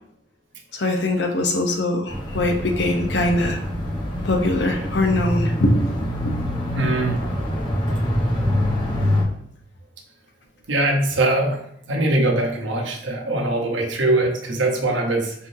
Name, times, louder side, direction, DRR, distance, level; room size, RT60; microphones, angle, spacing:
voice 1, 0.7-3.6 4.2-5.7 6.2-6.3, left 2 dB, 65° left, 3 dB, 0.7 m, -22 dB
sound 1, 2.1-9.2, equal, 25° left, 1.0 m, -25 dB
voice 2, 6.7-7.2 10.7-11.6 11.9-15.3, right 2 dB, 85° right, 2 dB, 0.9 m, -21 dB
4.5 x 3.6 x 2.7 m, 0.70 s
head